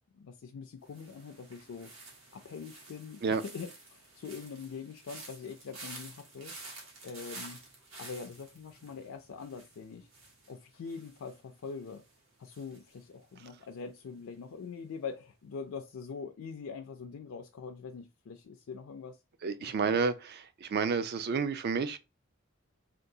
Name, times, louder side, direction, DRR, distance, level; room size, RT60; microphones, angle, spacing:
voice 1, 0.1-1.9 2.3-6.5 7.0-7.6 8.0-10.1 10.5-12.0 12.4-19.2 19.6-20.0, left 5 dB, 80° left, 0.4 m, -43 dB
sound 1, 0.9-13.9 14.2-14.6, right 3 dB, 70° right, 1.2 m, -51 dB
voice 2, 19.4-22.0, right 5 dB, 50° right, 0.4 m, -30 dB
3.6 x 2.3 x 2.7 m
head